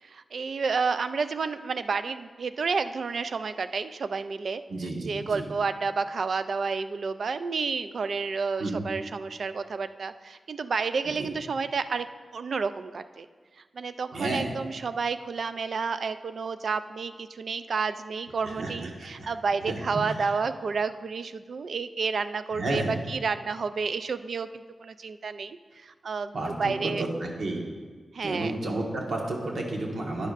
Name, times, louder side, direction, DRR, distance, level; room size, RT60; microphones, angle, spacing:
voice 1, 0.0-4.6 5.1-13.3 13.6-27.1 28.1-28.5, right 5 dB, 60° right, 11 dB, 0.3 m, -30 dB
voice 2, 4.7-5.5 8.6-8.9 11.2-11.3 14.1-14.5 18.4-19.3 19.7-20.3 22.5-23.0 26.3-27.6 28.2-30.3, right 2 dB, 85° right, -1 dB, 1.3 m, -32 dB
11.5 x 10.0 x 2.5 m, 1.5 s
wide cardioid pair, 155°, 0 cm